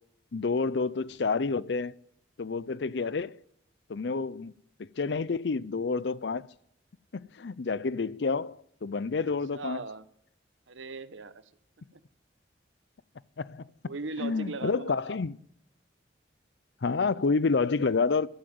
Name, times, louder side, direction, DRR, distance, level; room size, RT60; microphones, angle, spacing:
voice 1, 0.3-1.9 2.4-3.4 3.9-4.5 4.8-6.5 7.1-9.8 13.4-13.7 14.2-15.4 16.8-18.3, left 4 dB, 65° left, 0.5 m, -29 dB
voice 2, 9.2-10.0 10.7-11.3 11.9-12.0 13.8-15.2, right 3 dB, 85° right, 1.1 m, -39 dB
13.0 x 12.5 x 7.8 m
head